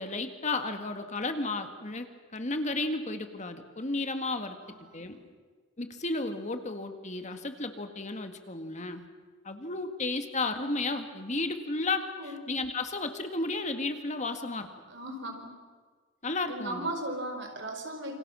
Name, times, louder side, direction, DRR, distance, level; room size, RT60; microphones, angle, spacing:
voice 1, 0.0-5.2 5.8-9.1 9.4-14.7 16.2-16.9, left 2 dB, 40° left, 7 dB, 1.8 m, -33 dB
voice 2, 4.6-5.0 12.2-12.3 14.9-15.5 16.5-18.2, right 1 dB, 65° right, 4 dB, 4.8 m, -37 dB
28.0 x 25.5 x 6.3 m, 1.5 s
head